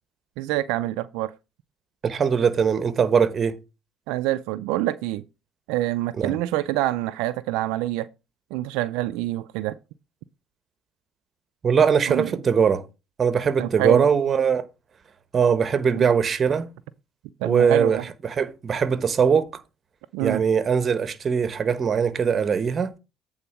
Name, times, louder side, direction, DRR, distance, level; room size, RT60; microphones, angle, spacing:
voice 1, 0.4-1.3 4.1-5.2 5.7-8.1 8.5-9.8 12.1-12.4 13.6-14.0 15.9-16.1 17.4-18.1 20.1-20.4, right 16 dB, 85° right, 0.4 m, -26 dB
voice 2, 2.0-3.5 6.2-6.4 11.6-12.8 13.2-14.6 15.3-16.7 17.4-19.6 20.2-22.9, right 6 dB, 40° right, 1.0 m, -21 dB
8.5 x 3.9 x 5.8 m
supercardioid pair, 85°, 0 cm